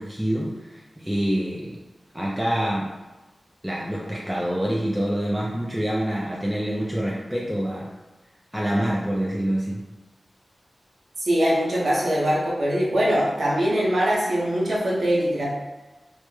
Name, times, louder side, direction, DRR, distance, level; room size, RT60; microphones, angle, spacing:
voice 1, 0.0-1.8 2.1-2.9 3.6-7.9 8.5-9.8, equal, 10° right, -5 dB, 0.4 m, -26 dB
voice 2, 11.2-15.5, equal, 80° right, -5 dB, 0.6 m, -22 dB
2.1 x 2.1 x 3.1 m, 1.1 s
cardioid pair, 40°, 0 cm